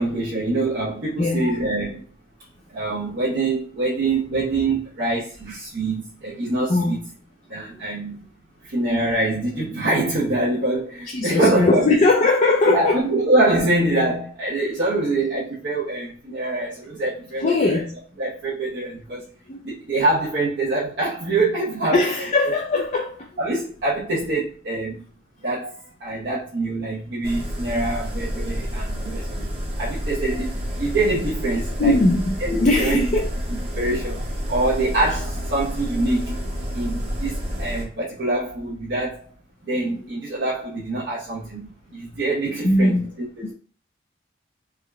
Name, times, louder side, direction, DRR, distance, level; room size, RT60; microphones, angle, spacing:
voice 1, 0.0-2.0 2.7-7.0 7.5-8.3 8.6-12.0 12.6-17.8 18.2-19.2 19.6-22.3 23.4-25.0 25.4-30.5 30.8-32.0 32.4-33.0 33.7-36.4 36.7-39.3 39.6-43.5, right 2 dB, 65° right, 0.9 m, -25 dB
voice 2, 11.1-13.0 17.4-18.0 19.5-19.6 21.9-23.3 31.8-33.3 42.6-43.1, left 2 dB, 40° left, 0.4 m, -20 dB
sound 1, 27.2-37.8, equal, 30° right, 0.9 m, -29 dB
3.6 x 2.2 x 3.4 m
head